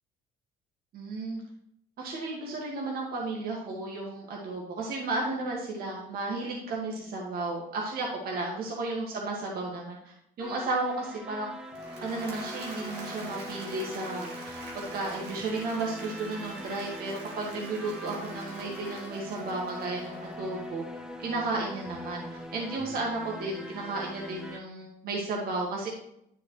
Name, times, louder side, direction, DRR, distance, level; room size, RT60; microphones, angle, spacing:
voice 1, 0.9-1.4 2.0-11.5 12.0-14.3 14.7-20.8 21.2-25.9, right 2 dB, 65° right, -2 dB, 1.9 m, -33 dB
sound 1, 10.4-24.6, left 1 dB, 5° right, 0.8 m, -42 dB
Applause / Crowd, 11.6-20.7, right 3 dB, 85° right, 2.1 m, -45 dB
10.0 x 6.2 x 3.2 m, 0.76 s
cardioid pair, 110°, 17 cm